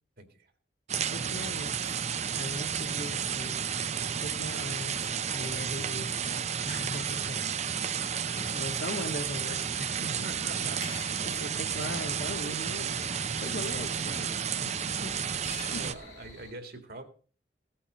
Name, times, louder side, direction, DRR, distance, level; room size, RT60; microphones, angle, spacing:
voice 1, 0.2-0.5 8.3-8.7 10.1-11.2 14.1-14.7 15.8-17.0, right 2 dB, 60° right, 7 dB, 2.2 m, -45 dB
sound 1, 0.9-15.9, right 7 dB, 40° right, 0.7 m, -32 dB
voice 2, 1.0-2.0 2.3-3.6 4.1-7.4 7.8-14.4 14.7-14.8 15.0-15.1 15.7-15.8, left 1 dB, 75° left, 5 dB, 1.8 m, -40 dB
sound 2, 10.3-16.5, left 4 dB, 40° left, 1.6 m, -49 dB
16.5 x 8.8 x 5.5 m, 0.40 s
head